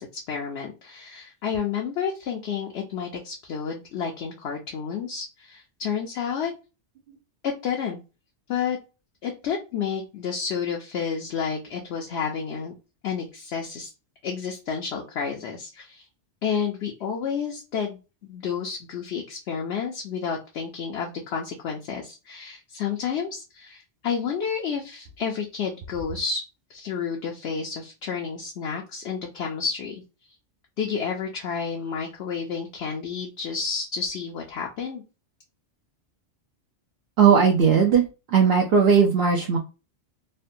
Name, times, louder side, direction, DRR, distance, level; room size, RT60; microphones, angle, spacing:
voice 1, 0.0-6.5 7.4-8.0 8.5-8.8 9.2-12.7 13.0-13.9 14.2-16.1 16.4-26.4 26.7-30.0 30.8-35.0, left 6 dB, 70° left, 0 dB, 0.9 m, -30 dB
voice 2, 37.2-39.6, right 6 dB, 65° right, 0 dB, 0.8 m, -18 dB
3.3 x 2.2 x 2.6 m, 0.29 s
omnidirectional pair, 1.2 m